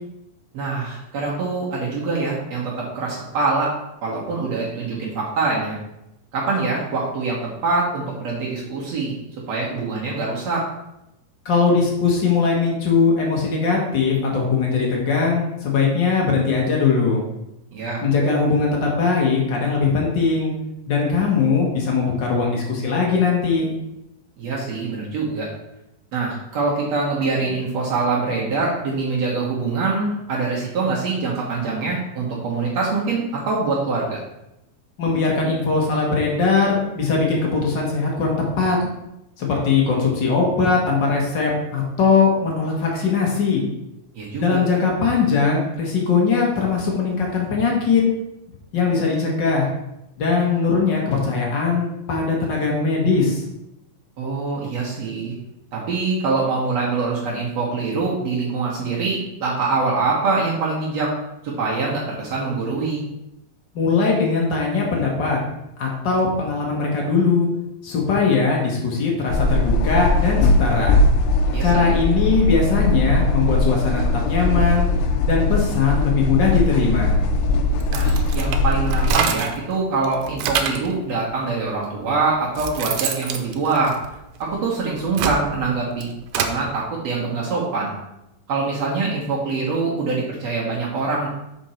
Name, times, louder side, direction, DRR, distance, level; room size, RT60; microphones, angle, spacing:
voice 1, 0.5-3.7 4.0-5.8 6.3-9.1 9.5-10.7 17.7-18.0 24.4-25.5 26.1-34.2 44.1-44.6 54.2-55.3 55.7-61.1 61.4-63.0 71.5-71.9 77.9-84.0 84.4-87.9 88.5-91.3, right 3 dB, 60° right, -4 dB, 2.1 m, -24 dB
voice 2, 11.4-17.2 18.0-20.5 20.9-23.7 35.0-38.8 39.4-43.6 44.4-48.0 48.7-49.7 50.2-53.4 63.7-65.4 65.8-67.5 67.8-71.0 71.6-74.9 75.2-77.2, left 4 dB, 55° left, -2 dB, 1.2 m, -20 dB
sound 1, 69.3-79.1, left 2 dB, 90° left, 2.4 m, -20 dB
sound 2, 77.8-79.7 80.0-80.9 81.7-81.8 82.3-84.4 84.9-86.6, right 7 dB, 90° right, 2.4 m, -26 dB
6.3 x 5.2 x 4.3 m, 0.87 s
omnidirectional pair, 4.1 m